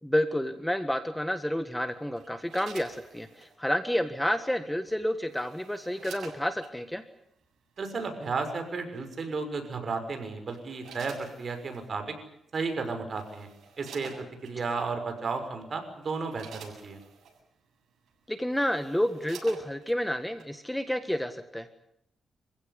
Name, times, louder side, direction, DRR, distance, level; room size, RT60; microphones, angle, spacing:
voice 1, 0.0-7.0 18.3-21.7, equal, 5° left, 9 dB, 1.6 m, -30 dB
sound 1, 2.2-3.5 4.9-6.7 7.8-8.0 9.7-10.0 10.5-11.9 12.7-12.8 13.1-14.6 15.3-15.5 15.9-17.4 18.1-18.2 18.4-20.0 20.4-20.5, right 6 dB, 85° right, 7.9 m, -49 dB
voice 2, 7.8-12.1 12.5-13.5 13.8-17.0, right 4 dB, 50° right, 6 dB, 6.0 m, -33 dB
27.5 x 16.0 x 9.8 m, 0.76 s
cardioid pair, 95°, 0 cm